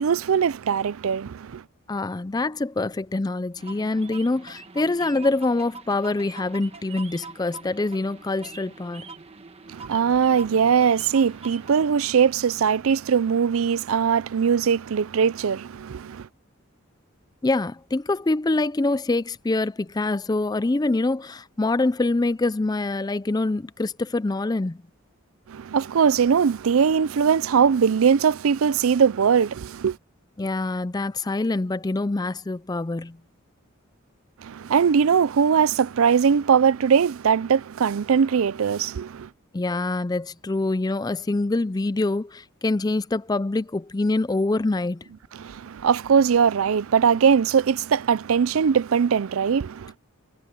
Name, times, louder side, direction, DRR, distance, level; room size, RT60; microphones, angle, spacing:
voice 1, 0.0-1.6 9.7-16.3 25.5-30.0 34.4-39.3 45.3-49.9, right 6 dB, 75° right, 0.4 m, -21 dB
voice 2, 1.9-9.1 17.4-24.8 30.4-33.2 39.5-45.1, left 2 dB, 20° left, 0.4 m, -25 dB
sound 1, 3.6-11.7, right 4 dB, 30° right, 1.3 m, -43 dB
head